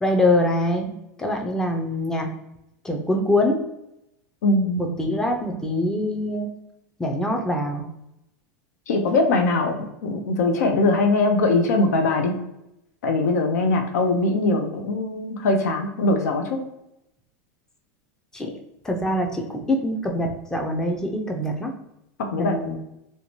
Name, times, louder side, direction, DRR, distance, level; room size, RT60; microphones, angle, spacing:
voice 1, 0.0-0.9 1.2-2.3 2.8-3.6 4.8-6.5 7.0-7.9 18.3-18.5 18.8-21.7 22.4-22.8, left 1 dB, 5° left, 2 dB, 0.4 m, -24 dB
voice 2, 4.4-4.8 8.9-12.4 13.0-16.6 22.2-22.6, left 2 dB, 90° left, 4 dB, 0.5 m, -21 dB
2.6 x 2.1 x 3.0 m, 0.85 s
supercardioid pair, 120°, 9 cm